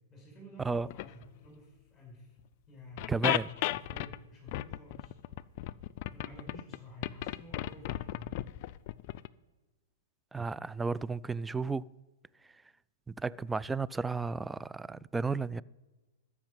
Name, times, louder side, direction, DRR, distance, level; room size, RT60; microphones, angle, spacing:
voice 1, 0.1-2.3 2.7-5.2 6.1-8.3, left 1 dB, 25° left, 4.8 m, -51 dB
sound 1, 0.8-1.2 2.4-2.5 3.0-4.2 4.5-6.8 7.0-9.3, left 15 dB, 50° left, 0.5 m, -34 dB
voice 2, 3.1-3.5 10.3-11.9 13.1-15.6, right 4 dB, 10° right, 0.3 m, -33 dB
13.5 x 6.2 x 9.0 m
hypercardioid pair, 120°, 0 cm